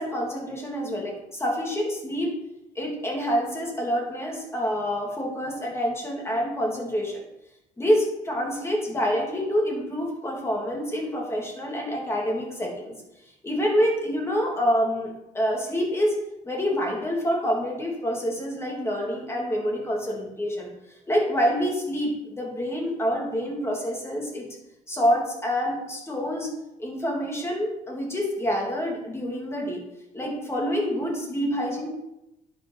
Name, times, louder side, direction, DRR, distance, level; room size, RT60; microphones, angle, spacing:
voice 1, 0.0-2.3 2.7-7.2 7.8-12.9 13.4-16.1 16.4-20.7 21.1-24.5 24.9-26.5 26.8-29.8 30.1-31.9, equal, 15° left, -1 dB, 3.1 m, -27 dB
10.5 x 5.4 x 5.7 m, 0.90 s
cardioid pair, 110°, 17 cm